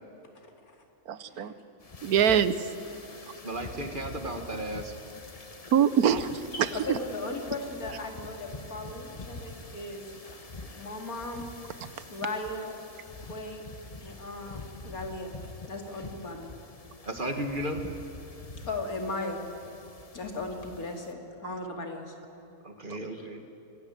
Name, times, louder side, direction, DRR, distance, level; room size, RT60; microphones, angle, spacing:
voice 1, 0.3-0.8 1.3-1.6 3.1-3.2 6.5-10.2 10.7-11.4 12.1-12.7 13.2-13.6 14.0-15.3 15.7-16.5 18.7-19.4 20.1-22.1 23.1-23.3, left 2 dB, 70° left, 3 dB, 3.0 m, -37 dB
voice 2, 1.1-1.5 2.0-2.7 5.7-7.0 11.8-11.9, right 8 dB, 75° right, 14 dB, 1.3 m, -24 dB
sound 1, 1.8-21.1, left 2 dB, 25° left, 1.1 m, -46 dB
voice 3, 3.4-4.9 17.1-17.8 22.6-23.4, right 1 dB, 35° right, 6 dB, 1.7 m, -34 dB
24.5 x 16.5 x 9.2 m, 2.9 s
omnidirectional pair, 1.6 m